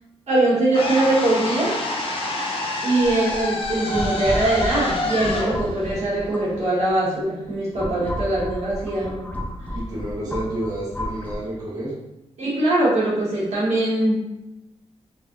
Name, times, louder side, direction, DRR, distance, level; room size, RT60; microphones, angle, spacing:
voice 1, 0.3-1.8 2.8-9.3 12.4-14.3, right 2 dB, 75° right, -7 dB, 1.4 m, -22 dB
sound 1, 0.7-6.8, left 2 dB, 55° left, 0.7 m, -27 dB
sound 2, 3.0-6.9 7.4-11.4, equal, 15° left, 0.4 m, -32 dB
voice 2, 9.7-11.9, right 1 dB, 35° right, -8 dB, 1.1 m, -30 dB
3.3 x 3.3 x 2.6 m, 0.92 s
wide cardioid pair, 145°, 11 cm